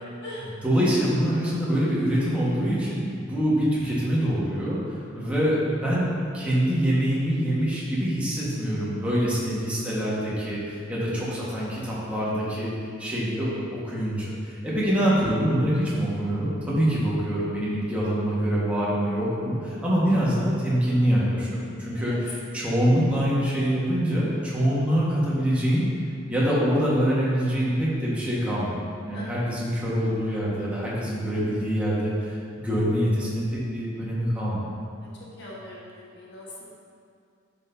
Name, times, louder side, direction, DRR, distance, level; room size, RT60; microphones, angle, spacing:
voice 1, 0.4-4.8 5.1-12.7 13.0-25.9 26.3-28.8 29.1-33.5 33.7-34.6, equal, 5° right, -8 dB, 1.5 m, -25 dB
voice 2, 11.2-11.7 21.9-22.2 29.1-29.4 32.6-32.7 35.0-35.1 35.4-36.6, left 1 dB, 55° left, -6 dB, 1.4 m, -42 dB
10.5 x 5.7 x 2.7 m, 2.5 s
head